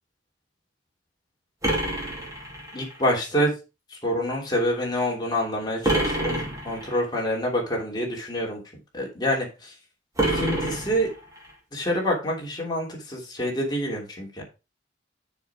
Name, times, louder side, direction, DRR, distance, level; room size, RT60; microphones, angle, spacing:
sound 1, 1.6-3.0 5.8-7.0 10.2-11.5, right 1 dB, 15° right, 2.6 m, -27 dB
voice 1, 2.7-3.6 3.9-8.6 8.9-9.7 10.2-11.1 11.7-14.4, equal, 20° left, -1 dB, 3.0 m, -27 dB
7.1 x 6.6 x 4.9 m, 0.28 s
head